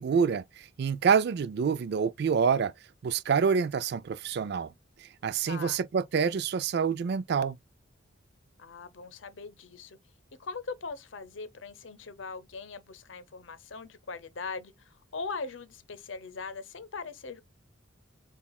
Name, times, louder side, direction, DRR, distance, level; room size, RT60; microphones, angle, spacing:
voice 1, 0.0-2.7 3.0-4.7 5.0-7.6, right 6 dB, 55° right, 0.4 m, -27 dB
voice 2, 5.5-5.8 8.6-10.0 10.4-17.4, left 4 dB, 80° left, 0.7 m, -40 dB
7.0 x 2.4 x 2.2 m
head